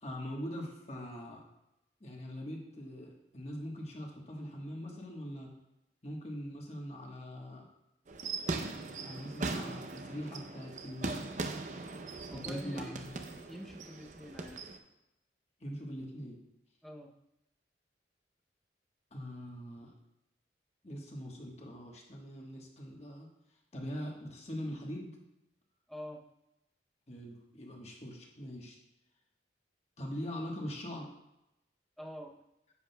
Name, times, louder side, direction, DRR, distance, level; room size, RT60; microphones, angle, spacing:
voice 1, 0.0-1.4 2.0-5.5 6.0-7.7 9.0-11.2 12.3-13.2 15.6-16.4 19.1-19.9 20.8-23.3 23.7-25.2 27.1-28.8 30.0-31.1, equal, 35° left, 0 dB, 1.3 m, -42 dB
sound 1, 8.1-14.8, right 3 dB, 40° right, 0.6 m, -40 dB
voice 2, 12.3-13.0 13.5-14.6 16.8-17.1 25.9-26.2 32.0-32.3, equal, ahead, 0 dB, 0.7 m, -46 dB
9.7 x 7.5 x 2.3 m, 0.87 s
head